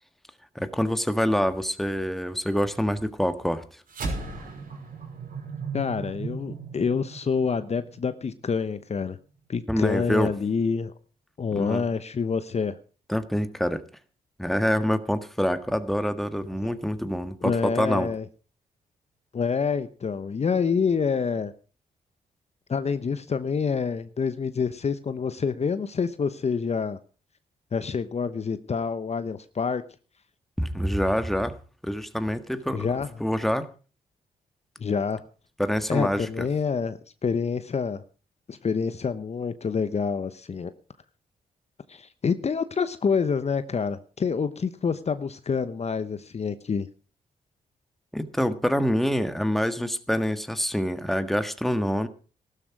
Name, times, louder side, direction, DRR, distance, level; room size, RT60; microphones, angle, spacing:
voice 1, 0.5-3.6 9.7-10.3 11.5-11.9 13.1-13.8 14.4-18.1 30.6-31.6 31.8-32.9 33.2-33.7 35.6-36.4 48.1-52.1, equal, ahead, 10 dB, 1.6 m, -26 dB
sound 1, 3.9-8.5, right 4 dB, 65° right, 5.9 m, -36 dB
voice 2, 5.7-9.2 9.5-10.9 11.4-12.8 16.6-16.7 17.4-18.2 19.3-21.5 22.7-27.0 27.7-29.8 32.7-33.1 34.8-35.2 35.9-38.0 38.5-40.7 41.9-46.9, left 5 dB, 45° left, 12 dB, 1.0 m, -27 dB
14.5 x 12.5 x 4.8 m, 0.37 s
cardioid pair, 65°, 16 cm